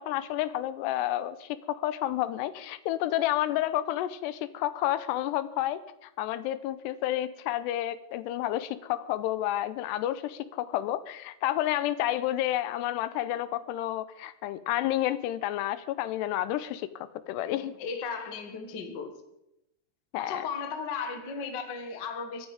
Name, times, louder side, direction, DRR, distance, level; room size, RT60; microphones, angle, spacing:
voice 1, 0.0-17.7 20.1-20.5, left 13 dB, 85° left, 14 dB, 2.8 m, -30 dB
voice 2, 17.5-19.1 20.2-22.5, left 5 dB, 55° left, 6 dB, 1.1 m, -36 dB
23.5 x 9.7 x 5.1 m, 0.86 s
omnidirectional pair, 4.8 m